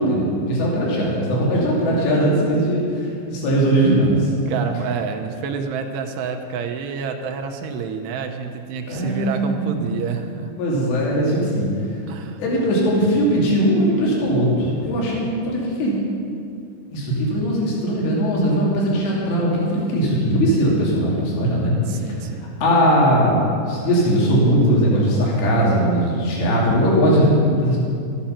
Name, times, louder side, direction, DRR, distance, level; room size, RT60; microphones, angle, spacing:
voice 1, 0.0-4.3 8.9-9.8 10.6-12.1 12.4-15.9 16.9-21.7 22.6-27.8, equal, 75° left, -5 dB, 4.7 m, -19 dB
voice 2, 4.5-10.5 12.1-12.4 21.9-22.5, right 6 dB, 80° right, 5 dB, 2.8 m, -28 dB
13.5 x 10.0 x 5.8 m, 2.5 s
omnidirectional pair, 5.0 m